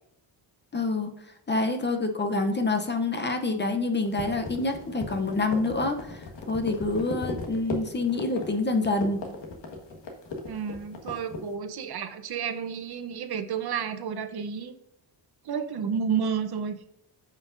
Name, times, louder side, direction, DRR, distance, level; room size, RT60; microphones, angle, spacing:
voice 1, 0.7-1.1 1.5-9.2, left 2 dB, 25° left, 6 dB, 0.6 m, -27 dB
sound 1, 4.1-11.5, left 3 dB, 70° left, 1.5 m, -37 dB
voice 2, 10.4-14.7 15.4-16.8, right 7 dB, 60° right, 9 dB, 0.8 m, -31 dB
14.0 x 5.3 x 2.5 m, 0.75 s
wide cardioid pair, 145°, 44 cm